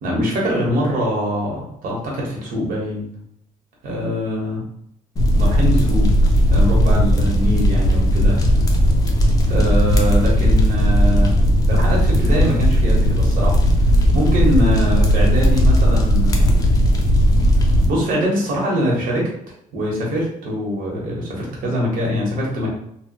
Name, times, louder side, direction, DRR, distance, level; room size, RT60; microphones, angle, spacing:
voice 1, 0.0-3.1 3.8-4.6 5.4-6.1 6.5-8.4 9.5-11.3 11.7-13.6 14.1-16.7 17.9-19.3 19.7-22.7, equal, 75° right, -3 dB, 1.1 m, -23 dB
sound 1, 5.2-17.9, equal, 25° left, 0.4 m, -16 dB
3.0 x 2.1 x 2.8 m, 0.72 s
cardioid pair, 155°, 15 cm